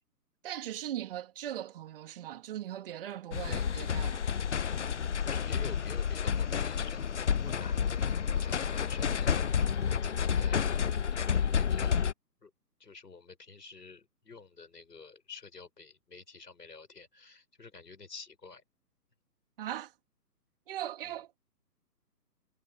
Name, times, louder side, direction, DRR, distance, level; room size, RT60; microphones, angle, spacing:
voice 1, 0.4-4.2 19.6-19.9 20.7-21.4, right 11 dB, 35° right, 3.7 m, -39 dB
sound 1, 3.3-12.1, left 7 dB, 50° left, 0.5 m, -30 dB
voice 2, 5.2-7.1 7.3-8.0 8.4-10.6 11.1-12.0 12.4-12.5 12.8-18.6 21.0-21.2, left 4 dB, 75° left, 7.7 m, -49 dB
figure-of-eight pair, 145°, 49 cm